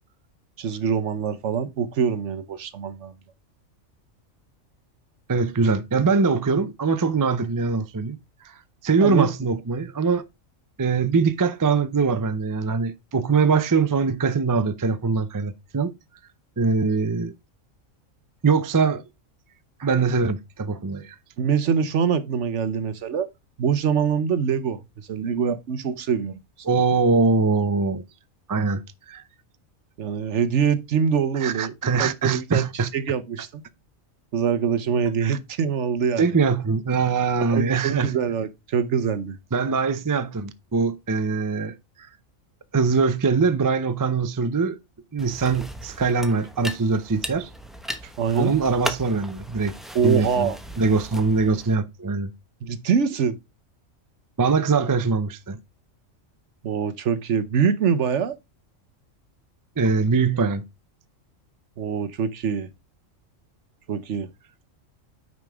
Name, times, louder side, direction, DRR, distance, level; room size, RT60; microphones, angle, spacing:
voice 1, 0.6-3.1 9.0-9.3 21.4-23.3 23.6-24.8 25.1-26.4 30.0-31.7 32.0-33.6 34.3-36.3 37.4-39.4 48.2-48.5 49.9-50.6 52.6-53.4 56.6-58.4 61.8-62.7 63.9-64.3, right 7 dB, 65° right, 1.1 m, -24 dB
voice 2, 5.3-8.2 8.8-10.2 10.8-15.9 16.6-17.3 18.4-19.0 19.8-21.1 26.6-28.0 28.5-28.8 29.1-29.2 31.4-32.9 35.2-35.4 36.2-38.2 39.5-41.7 42.7-44.8 45.1-47.5 48.3-49.7 50.0-50.5 50.8-52.3 54.4-55.6 59.8-60.6, right 4 dB, 30° right, 0.4 m, -22 dB
sound 1, 45.2-51.7, equal, ahead, 0.9 m, -37 dB
9.3 x 5.3 x 3.5 m
omnidirectional pair, 1.4 m